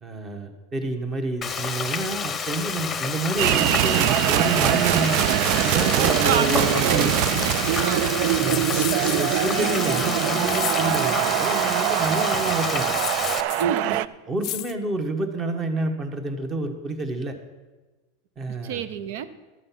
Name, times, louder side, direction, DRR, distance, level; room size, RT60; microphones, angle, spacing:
voice 1, 0.0-5.2 5.6-7.4 8.4-12.9 13.6-14.0 14.3-17.3 18.4-18.8, right 2 dB, 25° right, 6 dB, 1.3 m, -29 dB
Frying (food), 1.4-13.4, left 6 dB, 20° left, 0.8 m, -29 dB
sound 1, 3.4-14.1, right 14 dB, 55° right, 0.3 m, -23 dB
voice 2, 6.2-7.1 7.5-8.1 13.6-14.0 18.6-19.2, right 8 dB, 70° right, 13 dB, 0.8 m, -28 dB
sound 2, 8.5-11.1 12.7-13.8 14.4-14.7, left 15 dB, 45° left, 0.4 m, -34 dB
12.5 x 7.7 x 5.8 m, 1.2 s
supercardioid pair, 140°, 0 cm